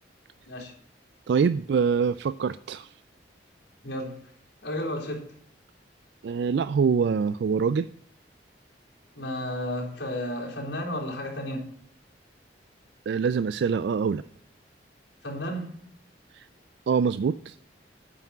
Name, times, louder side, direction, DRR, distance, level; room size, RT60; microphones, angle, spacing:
voice 1, 1.3-2.9 6.2-7.9 13.1-14.2 16.3-16.4 16.9-17.6, right 6 dB, 65° right, 14 dB, 0.3 m, -24 dB
voice 2, 3.8-4.2 4.6-5.2 9.1-11.7 15.2-15.7, left 1 dB, 85° left, -2 dB, 3.5 m, -32 dB
9.1 x 5.9 x 8.0 m, 0.66 s
head